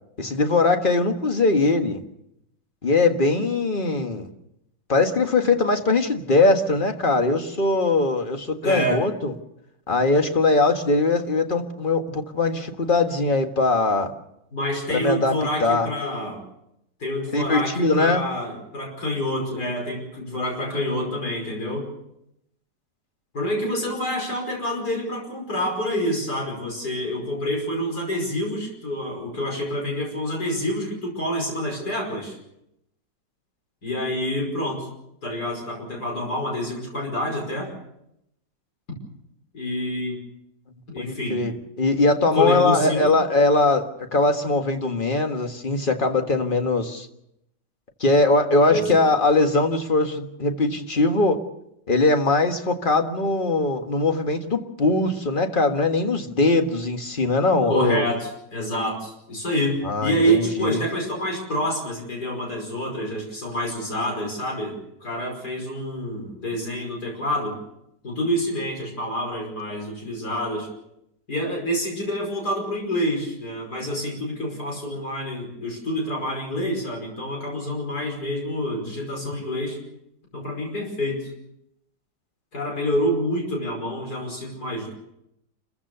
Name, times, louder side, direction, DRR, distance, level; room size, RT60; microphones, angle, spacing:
voice 1, 0.2-2.0 2.8-4.3 4.9-9.3 9.9-14.1 14.9-15.9 17.3-18.2 41.0-47.1 48.0-51.4 51.9-58.0 59.8-60.8, left 3 dB, 30° left, 5 dB, 1.7 m, -21 dB
voice 2, 8.6-9.1 14.5-16.4 17.0-21.9 23.3-32.4 33.8-34.9 35.2-37.7 39.5-40.2 40.9-41.4 42.3-43.1 48.7-49.0 57.7-67.5 68.0-70.7 71.3-79.8 80.3-81.3 82.5-84.9, equal, 65° left, 0 dB, 6.1 m, -27 dB
29.0 x 15.0 x 6.9 m, 0.82 s
omnidirectional pair, 1.8 m